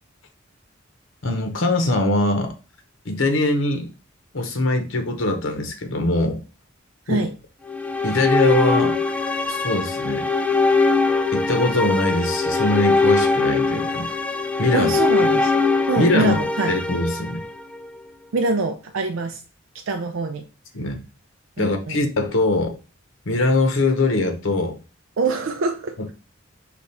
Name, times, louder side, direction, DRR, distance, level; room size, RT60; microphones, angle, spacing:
voice 1, 1.2-2.5 3.0-3.9 4.3-6.4 7.1-7.2 8.0-9.0 9.5-10.3 11.3-14.1 14.6-14.9 16.0-16.4 16.7-17.4 20.7-21.0 21.6-22.8 23.3-24.8, left 2 dB, 75° left, 6 dB, 0.9 m, -22 dB
sound 1, 7.7-17.9, left 3 dB, 5° left, 0.3 m, -21 dB
voice 2, 14.7-15.5 15.9-16.7 18.3-19.4 19.7-20.5 21.6-22.0 25.2-26.0, right 3 dB, 80° right, 5 dB, 0.5 m, -24 dB
5.2 x 2.4 x 4.2 m, 0.32 s
head